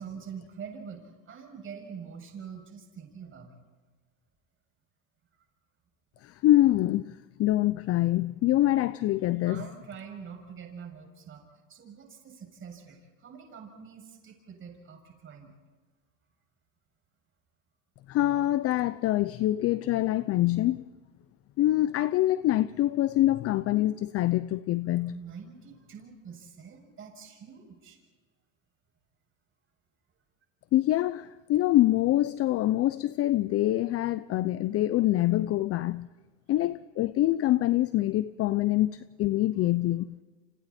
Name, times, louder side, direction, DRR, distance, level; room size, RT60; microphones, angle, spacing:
voice 1, 0.0-3.5 9.4-11.4 11.7-15.5 25.1-28.0 35.8-35.9, right 6 dB, 30° right, 7.3 m, -45 dB
voice 2, 6.2-9.7 18.1-20.8 21.6-25.1 30.7-36.1 36.5-40.2, left 15 dB, 35° left, 0.6 m, -25 dB
29.5 x 28.0 x 4.4 m
supercardioid pair, 115°, 39 cm